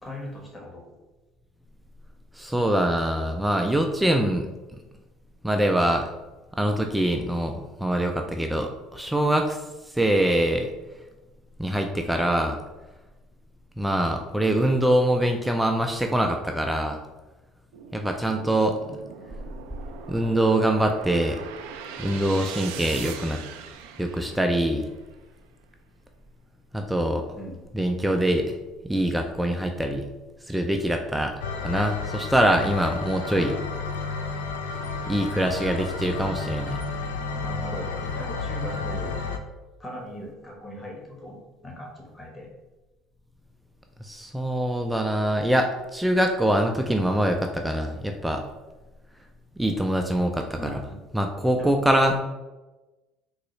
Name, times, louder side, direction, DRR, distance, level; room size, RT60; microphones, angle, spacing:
voice 1, 0.0-0.8 27.1-27.6 37.4-39.2 39.8-41.4 41.6-42.5 50.6-51.0 51.6-52.2, left 1 dB, 20° left, -1 dB, 1.1 m, -39 dB
voice 2, 2.3-4.5 5.4-6.1 6.5-9.6 9.9-10.7 11.6-12.6 13.8-17.0 17.9-19.0 20.1-21.4 22.0-23.4 24.0-24.9 26.7-27.3 27.7-28.5 28.8-30.1 30.5-31.3 31.6-33.6 35.1-36.8 44.0-48.4 49.6-50.8 51.1-52.2, right 1 dB, 5° right, 3 dB, 0.3 m, -24 dB
sound 1, 17.7-25.0, right 7 dB, 80° right, 0.3 m, -40 dB
sound 2, 31.4-39.4, left 4 dB, 85° left, 0.3 m, -32 dB
3.8 x 2.3 x 3.1 m, 1.1 s
supercardioid pair, 80°, 0 cm